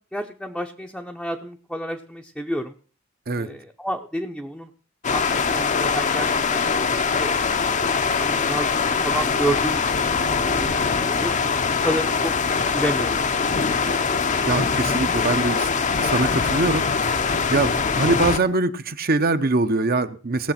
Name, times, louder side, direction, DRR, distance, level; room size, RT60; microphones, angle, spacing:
voice 1, 0.1-2.7 3.4-4.7 5.1-6.6 7.2-7.7 8.2-8.7 9.0-10.7 11.1-11.4 11.8-12.3 12.7-13.2, equal, ahead, 1 dB, 0.7 m, -30 dB
sound 1, 5.0-18.4, left 5 dB, 35° left, 0.7 m, -22 dB
voice 2, 14.3-20.5, right 3 dB, 50° right, 10 dB, 0.9 m, -23 dB
18.0 x 7.1 x 5.8 m, 0.40 s
head